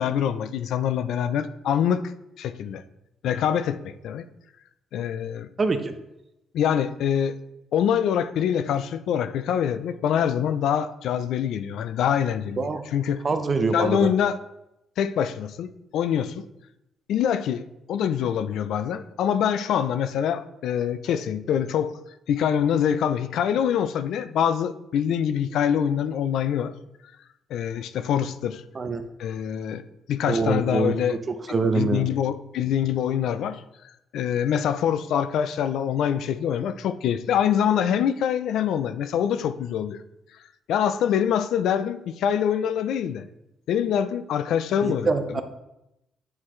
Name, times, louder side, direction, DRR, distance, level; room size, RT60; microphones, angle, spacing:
voice 1, 0.0-2.1 2.4-2.8 3.2-4.2 4.9-5.5 6.5-7.4 7.7-13.2 13.7-14.4 15.0-16.4 17.1-22.0 22.3-26.7 27.5-28.6 29.2-29.8 30.1-31.2 31.7-33.6 34.1-40.0 40.7-43.2 43.7-45.1, left 9 dB, 80° left, 0.4 m, -25 dB
voice 2, 5.6-5.9 12.6-12.8 13.2-14.1 28.7-29.0 30.3-30.9 31.5-32.1 44.8-45.4, right 3 dB, 35° right, 0.7 m, -24 dB
8.7 x 3.8 x 3.1 m
cardioid pair, 90°, 0 cm